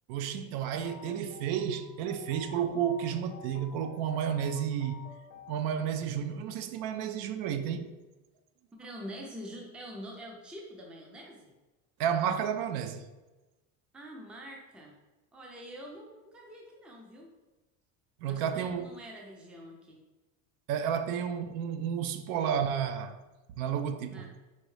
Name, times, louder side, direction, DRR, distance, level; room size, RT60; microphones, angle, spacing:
voice 1, 0.1-5.0 5.5-7.9 12.0-13.1 18.2-18.9 20.7-23.2 23.6-24.3, right 8 dB, 80° right, 0.5 m, -31 dB
sound 1, 0.6-5.7, left 7 dB, 80° left, 0.6 m, -51 dB
voice 2, 8.8-11.5 13.9-15.0 15.3-17.3 18.3-20.0 24.1-24.3, equal, 5° right, 0.3 m, -45 dB
4.5 x 2.7 x 3.1 m
cardioid pair, 140°, 40 cm